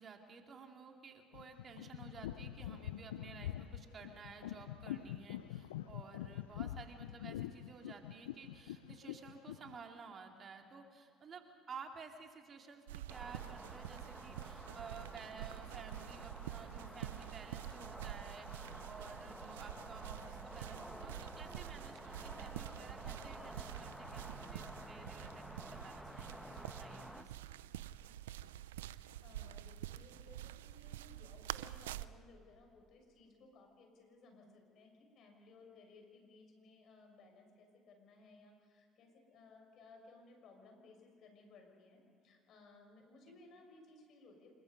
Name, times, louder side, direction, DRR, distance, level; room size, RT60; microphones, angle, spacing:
voice 1, 0.0-27.3 43.3-43.4, right 5 dB, 45° right, 3 dB, 2.8 m, -53 dB
sound 1, 1.3-9.8, left 12 dB, 85° left, 0.5 m, -45 dB
sound 2, 12.9-32.1, right 13 dB, 85° right, 0.5 m, -48 dB
sound 3, 13.1-27.2, equal, 5° left, 1.4 m, -51 dB
voice 2, 29.2-44.5, left 3 dB, 55° left, 2 dB, 6.3 m, -61 dB
26.0 x 22.5 x 5.4 m, 2.3 s
hypercardioid pair, 65°, 0 cm